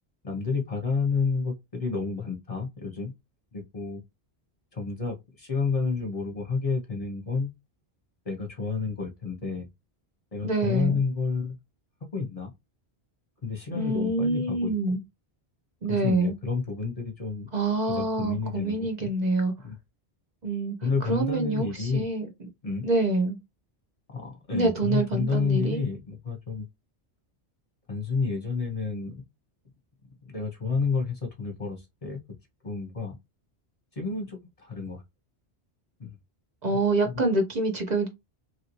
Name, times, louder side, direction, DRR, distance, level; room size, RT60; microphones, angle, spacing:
voice 1, 0.2-3.1 3.5-4.0 4.7-7.5 8.2-9.7 10.3-11.6 12.1-12.5 13.4-15.0 15.9-17.5 17.8-19.1 19.6-19.7 20.8-22.1 22.6-22.9 24.1-26.7 27.9-29.2 30.2-32.2 32.6-33.1 33.9-35.0 36.0-36.2 36.7-36.8 37.0-37.2, left 4 dB, 40° left, 0.8 m, -30 dB
voice 2, 10.4-11.0 13.7-15.0 15.8-16.3 17.5-19.5 20.4-20.8 21.1-22.2 22.8-23.4 24.5-25.8 36.6-38.1, right 2 dB, 45° right, 0.9 m, -26 dB
3.0 x 2.7 x 2.9 m
omnidirectional pair, 1.1 m